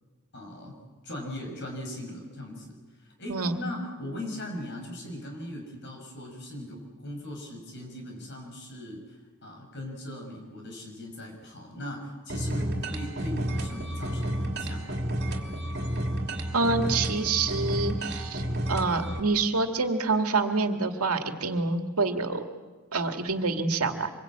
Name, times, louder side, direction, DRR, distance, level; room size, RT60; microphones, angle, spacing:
voice 1, 0.3-0.8 1.0-15.0, left 1 dB, 50° left, 2 dB, 6.1 m, -39 dB
voice 2, 3.3-3.6 16.5-18.4 18.7-22.4 22.9-24.1, right 3 dB, 90° right, 5 dB, 2.1 m, -27 dB
sound 1, 12.3-19.2, right 1 dB, 50° right, 2.8 m, -31 dB
26.0 x 23.0 x 8.7 m, 1.3 s
head